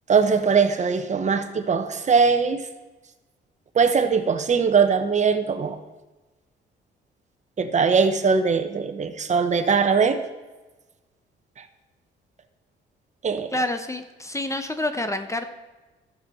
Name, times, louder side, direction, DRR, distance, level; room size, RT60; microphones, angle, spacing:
voice 1, 0.1-2.7 3.7-5.8 7.6-10.2 11.6-11.7 13.2-13.6, right 5 dB, 35° right, 8 dB, 1.0 m, -21 dB
voice 2, 13.5-15.5, left 1 dB, 15° left, 8 dB, 0.8 m, -28 dB
12.5 x 6.4 x 5.5 m, 1.1 s
cardioid pair, 90°, 20 cm